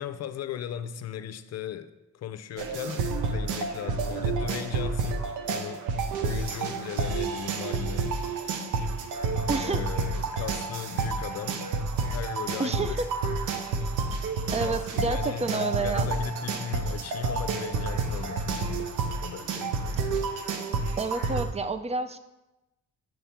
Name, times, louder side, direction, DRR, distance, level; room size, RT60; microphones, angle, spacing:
voice 1, 0.0-5.2 5.5-5.9 6.2-8.1 9.6-11.6 12.1-13.0 14.4-20.0, left 8 dB, 60° left, 0.6 m, -37 dB
sound 1, 2.6-21.5, right 4 dB, 90° right, 0.8 m, -30 dB
voice 2, 9.5-9.9 12.6-13.1 14.5-16.1 21.0-22.2, right 4 dB, 20° right, 0.5 m, -29 dB
7.6 x 3.5 x 5.8 m
cardioid pair, 90°, 30 cm